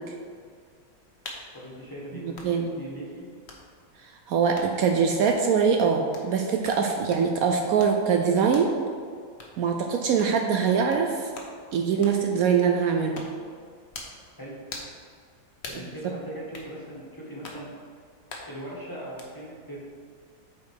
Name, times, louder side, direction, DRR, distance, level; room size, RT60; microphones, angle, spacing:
sound 1, 1.2-1.5 2.3-2.5 3.5-3.6 4.5-4.7 5.3-5.4 6.1-6.3 6.6-6.8 7.1-7.3 7.8-8.0 8.5-8.7 9.4-9.5 10.2-10.4 10.9-11.0 11.3-11.5 12.0-12.2 13.1-13.4 13.9-14.2 14.7-15.0 15.6-15.9 16.5-16.7 17.4-17.6 18.3-18.5 19.2-19.3, left 3 dB, 45° left, 1.2 m, -41 dB
voice 1, 1.5-3.3 14.4-14.6 15.6-17.7 18.5-19.8, right 1 dB, 15° left, -5 dB, 1.5 m, -40 dB
voice 2, 2.1-2.8 4.0-8.7 9.6-11.3 11.7-13.2, right 6 dB, 70° right, 3 dB, 1.0 m, -23 dB
8.1 x 4.7 x 4.7 m, 2.1 s
omnidirectional pair, 1.7 m